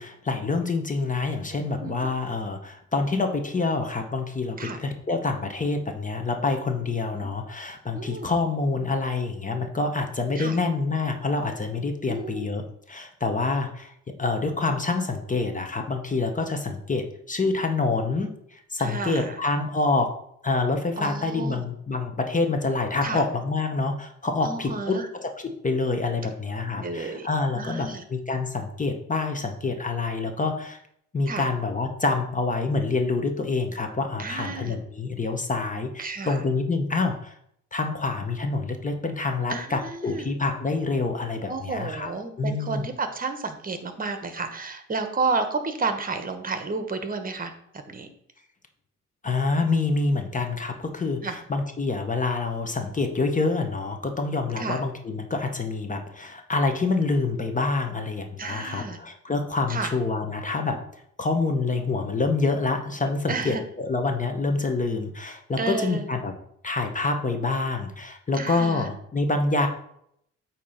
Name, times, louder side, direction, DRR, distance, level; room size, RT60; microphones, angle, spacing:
voice 1, 0.0-20.1 20.4-25.3 25.6-30.8 31.1-37.3 37.7-42.1 42.4-42.9 49.2-60.8 61.2-66.3 66.6-69.7, left 3 dB, 25° left, 5 dB, 0.9 m, -27 dB
voice 2, 7.9-8.3 10.4-10.6 12.1-12.5 18.8-19.4 21.0-21.6 23.0-23.2 24.4-25.1 26.7-27.3 27.6-28.0 31.3-31.5 34.2-34.8 36.0-36.4 39.5-40.3 41.5-47.5 47.9-48.1 51.2-51.4 54.6-54.8 58.4-59.0 59.7-59.9 63.3-63.6 65.6-66.1 68.3-68.9, right 3 dB, 30° right, 8 dB, 1.1 m, -31 dB
8.3 x 2.9 x 5.6 m, 0.71 s
cardioid pair, 90°, 30 cm